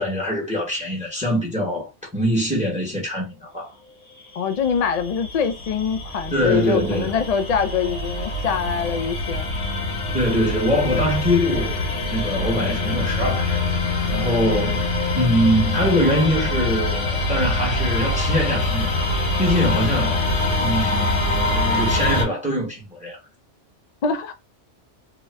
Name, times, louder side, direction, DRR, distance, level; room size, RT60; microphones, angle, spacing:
voice 1, 0.0-3.7 6.3-7.2 10.1-11.8 12.1-13.6 14.1-14.9 15.1-19.0 19.4-20.3 20.6-23.2, equal, 5° right, 1.0 m, -23 dB
voice 2, 4.4-9.6 24.0-24.3, left 6 dB, 75° left, 0.3 m, -24 dB
sound 1, 4.5-22.2, left 2 dB, 90° left, 1.3 m, -24 dB
2.9 x 2.4 x 3.2 m
omnidirectional pair, 1.2 m